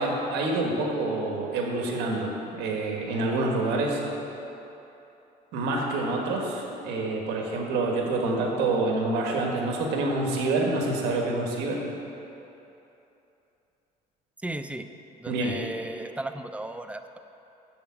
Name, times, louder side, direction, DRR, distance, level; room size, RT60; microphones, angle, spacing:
voice 1, 0.0-4.0 5.5-11.8 15.3-15.6, right 2 dB, 85° right, 0 dB, 1.6 m, -27 dB
voice 2, 14.4-14.9 15.2-17.2, right 1 dB, 10° right, 8 dB, 0.4 m, -35 dB
7.5 x 7.0 x 7.1 m, 3.0 s
cardioid pair, 110°, 17 cm